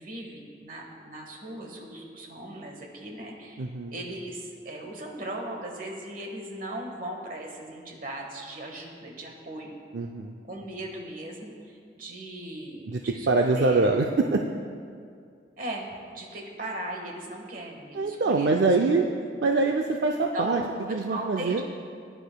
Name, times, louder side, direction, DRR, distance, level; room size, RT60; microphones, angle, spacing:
voice 1, 0.0-9.8 10.5-14.2 15.6-15.8 16.1-18.7 20.3-21.6, right 1 dB, 50° right, 1 dB, 1.4 m, -38 dB
voice 2, 3.6-3.9 9.9-10.4 12.9-14.4 17.9-19.1 19.4-20.6 20.9-21.6, right 3 dB, 70° right, 3 dB, 0.5 m, -24 dB
18.5 x 9.9 x 2.3 m, 2.3 s
head